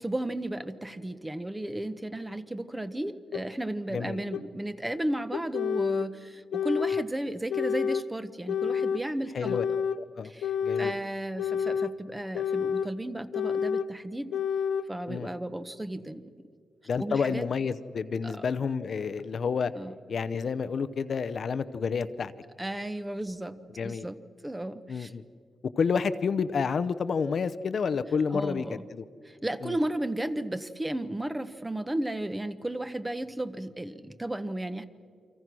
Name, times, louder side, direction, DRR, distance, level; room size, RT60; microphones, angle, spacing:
voice 1, 0.0-9.6 10.2-14.3 14.9-16.5 17.0-17.5 18.2-18.4 19.8-19.9 22.6-25.1 28.3-28.8 29.3-34.9, right 1 dB, 10° right, 12 dB, 0.9 m, -34 dB
sound 1, 3.3-3.4 4.3-4.4 5.3-6.1 6.5-7.1 7.5-8.1 8.5-9.0 9.4-10.0 10.4-11.0 11.4-11.9 12.3-12.9 13.3-13.9 14.3-14.9, left 7 dB, 85° left, 0.7 m, -29 dB
voice 2, 3.9-4.2 9.3-9.7 10.0-10.3 10.6-10.9 15.1-15.3 16.9-19.7 20.1-22.3 23.8-24.1 24.9-25.2 25.7-29.0 29.6-29.8, left 5 dB, 50° left, 12 dB, 0.7 m, -29 dB
29.5 x 25.0 x 6.2 m, 2.2 s
wide cardioid pair, 140°, 0 cm